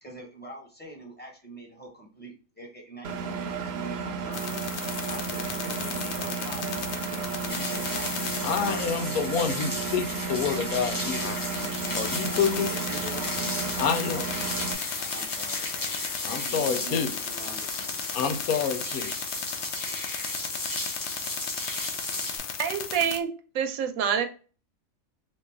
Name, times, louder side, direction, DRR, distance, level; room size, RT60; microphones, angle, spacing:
voice 1, 0.0-7.1 7.4-8.9 11.8-13.4 14.9-16.0 16.5-18.2, right 1 dB, 10° left, 0.9 m, -44 dB
Engine, 3.0-14.7, right 6 dB, 60° right, 0.7 m, -33 dB
sound 1, 4.3-8.9 10.9-11.0 11.1-23.2, left 7 dB, 65° left, 0.8 m, -36 dB
sound 2, 7.5-22.4, left 2 dB, 35° left, 0.3 m, -35 dB
voice 2, 8.4-11.4 12.0-12.7 13.8-14.3 16.2-17.1 18.1-19.1, left 6 dB, 90° left, 1.1 m, -28 dB
voice 3, 22.6-24.3, right 8 dB, 80° right, 1.1 m, -27 dB
3.1 x 2.7 x 3.3 m
omnidirectional pair, 1.5 m